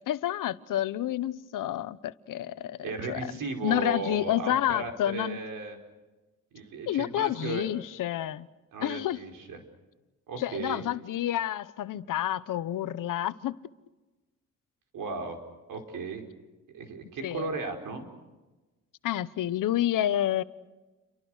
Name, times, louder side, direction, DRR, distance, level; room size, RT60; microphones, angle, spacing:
voice 1, 0.1-2.8 3.1-3.3 3.6-5.4 6.9-8.5 8.8-9.2 10.4-13.6 17.2-17.5 19.0-20.4, left 12 dB, 80° left, 15 dB, 1.0 m, -29 dB
voice 2, 2.8-5.8 6.5-7.7 8.7-9.6 10.3-10.8 14.9-15.4 15.7-16.2 16.7-18.1, right 4 dB, 85° right, 4 dB, 5.1 m, -35 dB
30.0 x 24.5 x 6.4 m, 1.1 s
cardioid pair, 135°, 32 cm